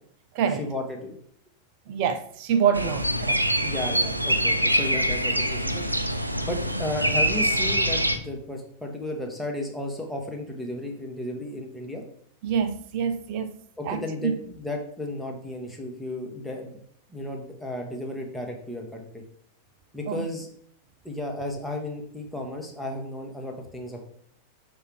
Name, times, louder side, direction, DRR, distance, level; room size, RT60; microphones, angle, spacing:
voice 1, 0.6-1.2 3.6-5.8 6.4-12.0 13.8-16.8 17.1-19.2 19.9-20.5 21.0-24.0, left 1 dB, ahead, 1.3 m, -34 dB
voice 2, 1.9-3.4 12.4-13.5 13.8-14.4 20.1-20.3, right 7 dB, 45° right, 0.6 m, -26 dB
sound 1, 2.7-8.2, equal, 85° right, 0.4 m, -24 dB
6.3 x 3.4 x 4.6 m
figure-of-eight pair, 90°, 0 cm